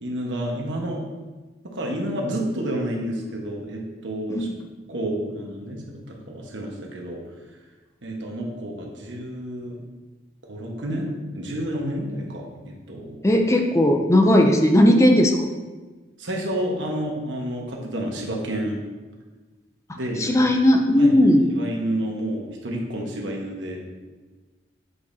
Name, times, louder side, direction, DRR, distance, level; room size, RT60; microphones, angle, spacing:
voice 1, 0.0-1.0 1.6-4.5 4.9-7.2 8.0-9.8 10.4-13.3 16.2-18.8 19.9-20.3 21.0-21.1 21.6-23.8, right 1 dB, 90° right, 0 dB, 1.2 m, -30 dB
voice 2, 13.2-15.5 19.9-21.5, left 1 dB, 15° left, 3 dB, 0.4 m, -17 dB
7.9 x 5.2 x 2.7 m, 1.3 s
head